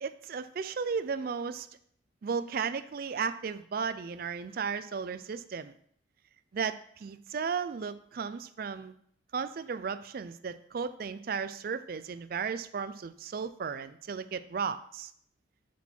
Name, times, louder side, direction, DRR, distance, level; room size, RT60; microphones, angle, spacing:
voice 1, 0.0-1.7 2.2-5.7 6.5-8.9 9.3-15.1, right 6 dB, 50° right, 12 dB, 0.4 m, -35 dB
7.1 x 6.1 x 4.4 m, 0.65 s
head